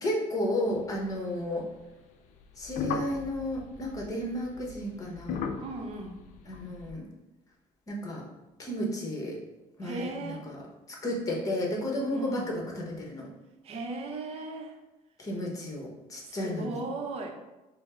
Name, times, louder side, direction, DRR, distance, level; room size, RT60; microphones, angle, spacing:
voice 1, 0.0-1.7 2.6-5.5 6.5-7.1 7.9-8.2 8.6-9.4 9.8-10.6 10.9-13.3 15.2-16.8, left 1 dB, 25° left, -1 dB, 0.9 m, -33 dB
sound 1, 0.7-1.7 2.3-6.9, left 7 dB, 65° left, 0.4 m, -39 dB
voice 2, 5.6-6.2 9.8-10.5 12.1-12.5 13.6-14.8 16.2-17.3, right 2 dB, 50° right, 3 dB, 0.6 m, -37 dB
5.1 x 2.0 x 3.6 m, 1.0 s
cardioid pair, 150°, 14 cm